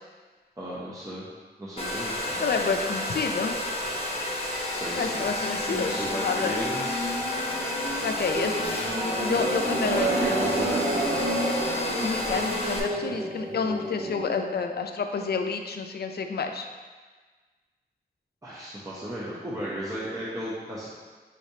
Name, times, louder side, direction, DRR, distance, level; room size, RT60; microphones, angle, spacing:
voice 1, 0.6-1.3 1.6-3.0 4.7-7.1 9.3-9.4 9.8-11.5 18.4-20.9, right 1 dB, 20° right, -8 dB, 0.8 m, -35 dB
Domestic sounds home sounds, 1.8-12.8, left 1 dB, 35° left, 0.8 m, -31 dB
voice 2, 2.4-3.6 5.0-6.6 8.0-8.7 9.2-10.3 12.0-16.7, left 5 dB, 70° left, 5 dB, 0.4 m, -29 dB
sound 1, 4.9-14.2, right 1 dB, 65° right, 0.8 m, -31 dB
5.6 x 3.3 x 2.7 m, 1.4 s
wide cardioid pair, 70°, 17 cm